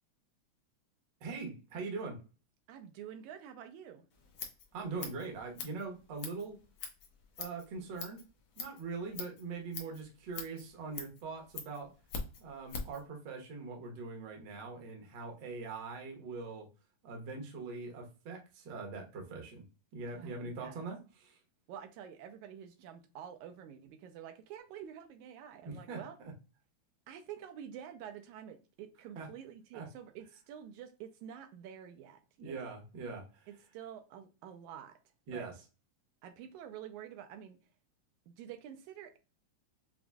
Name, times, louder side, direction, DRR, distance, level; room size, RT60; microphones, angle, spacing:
voice 1, 1.2-2.2 4.7-6.6 7.4-8.2 8.6-11.9 12.4-16.7 17.0-19.6 19.9-21.4 25.6-26.0 29.1-29.3 29.7-29.9 32.4-33.5 35.3-35.5, right 4 dB, 60° right, 1.2 m, -42 dB
voice 2, 2.7-4.1 20.1-20.9 21.7-26.2 27.1-32.7 33.5-35.0 35.3-35.5 36.2-37.6 38.3-39.2, right 9 dB, 80° right, 1.9 m, -48 dB
Scissors, 4.1-13.0, left 5 dB, 80° left, 1.1 m, -45 dB
6.9 x 2.6 x 2.3 m
omnidirectional pair, 3.5 m